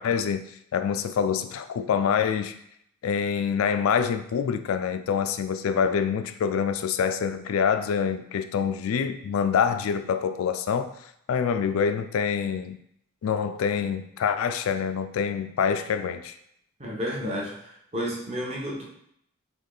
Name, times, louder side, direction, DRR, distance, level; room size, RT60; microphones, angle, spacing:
voice 1, 0.0-2.6 3.0-10.9 11.3-12.8 13.2-16.3, left 7 dB, 70° left, 10 dB, 0.3 m, -26 dB
voice 2, 16.8-18.8, equal, 30° right, -3 dB, 0.9 m, -31 dB
3.6 x 3.0 x 3.8 m, 0.72 s
head